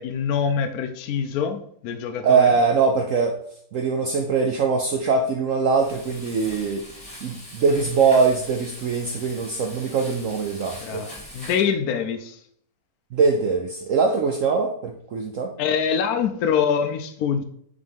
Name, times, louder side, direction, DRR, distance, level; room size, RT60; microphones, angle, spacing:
voice 1, 0.0-2.5 10.8-12.4 15.6-17.4, left 7 dB, 70° left, 6 dB, 0.9 m, -25 dB
voice 2, 2.2-3.3 3.7-6.8 7.2-11.0 13.1-15.5, right 5 dB, 85° right, 3 dB, 0.7 m, -22 dB
Frying (food), 5.7-11.7, left 1 dB, 5° left, 2.1 m, -42 dB
5.1 x 4.1 x 5.3 m, 0.67 s
omnidirectional pair, 2.1 m